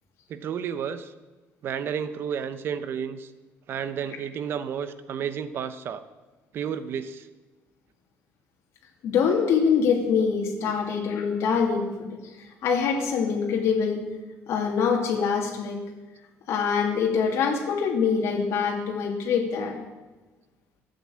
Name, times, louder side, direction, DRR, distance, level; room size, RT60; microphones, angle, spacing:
voice 1, 0.3-1.1 1.6-3.3 3.7-6.0 6.5-7.3 10.7-10.8, right 7 dB, 50° right, 12 dB, 0.9 m, -31 dB
voice 2, 9.0-12.2 12.6-14.1 14.5-15.8 16.5-19.8, left 6 dB, 65° left, 1 dB, 2.5 m, -24 dB
13.5 x 7.9 x 8.7 m, 1.2 s
cardioid pair, 160°, 5 cm